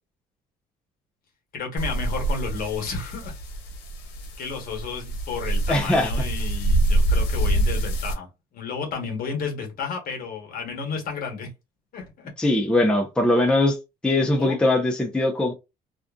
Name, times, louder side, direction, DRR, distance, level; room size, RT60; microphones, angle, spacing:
voice 1, 1.5-3.3 4.4-8.3 8.5-11.5 11.9-12.3 14.4-14.6, left 5 dB, 60° left, 1.1 m, -32 dB
sound 1, 1.8-8.1, right 1 dB, 85° left, 0.8 m, -25 dB
voice 2, 5.7-6.1 12.4-13.8 14.0-15.5, left 1 dB, 5° left, 0.6 m, -21 dB
2.5 x 2.4 x 2.3 m
cardioid pair, 110°, 17 cm